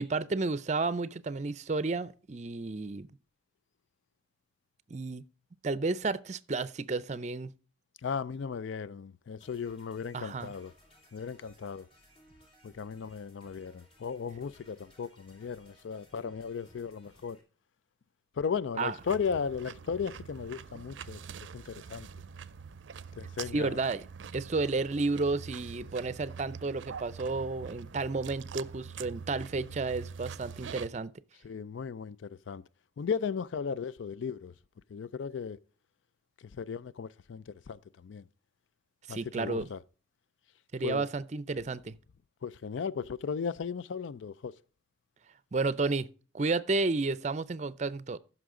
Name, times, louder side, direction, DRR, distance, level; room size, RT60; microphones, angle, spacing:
voice 1, 0.0-3.1 4.9-5.2 5.6-7.5 10.1-10.5 18.8-19.0 23.5-24.1 24.3-31.1 39.1-39.7 40.7-41.9 45.5-46.1 46.3-48.2, right 3 dB, 40° right, 0.5 m, -32 dB
voice 2, 8.0-10.7 11.1-11.9 12.6-17.4 18.4-21.2 21.5-22.1 23.2-23.8 31.4-32.6 33.0-34.5 34.9-35.6 36.6-38.3 39.1-39.8 40.8-41.0 42.4-44.5, left 6 dB, 85° left, 0.4 m, -36 dB
sound 1, 9.4-17.4, equal, 30° left, 2.5 m, -61 dB
sound 2, 19.0-30.9, right 6 dB, 85° right, 0.5 m, -45 dB
14.0 x 6.1 x 3.7 m
head